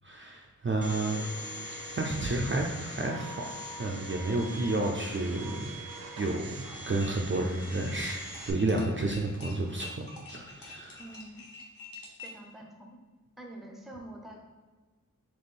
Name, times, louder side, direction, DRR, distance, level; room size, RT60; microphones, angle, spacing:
voice 1, 0.0-1.2 1.9-3.5 3.8-5.7 6.2-11.0, right 2 dB, 35° right, 1 dB, 0.5 m, -31 dB
Domestic sounds home sounds, 0.8-8.5, equal, 85° right, 0.7 m, -42 dB
sound 1, 6.7-12.5, left 4 dB, 80° left, 1.0 m, -48 dB
voice 2, 11.0-11.5 12.2-13.0 13.4-14.4, right 1 dB, ahead, 1 dB, 0.7 m, -46 dB
3.6 x 3.0 x 4.2 m, 1.3 s
wide cardioid pair, 75°, 34 cm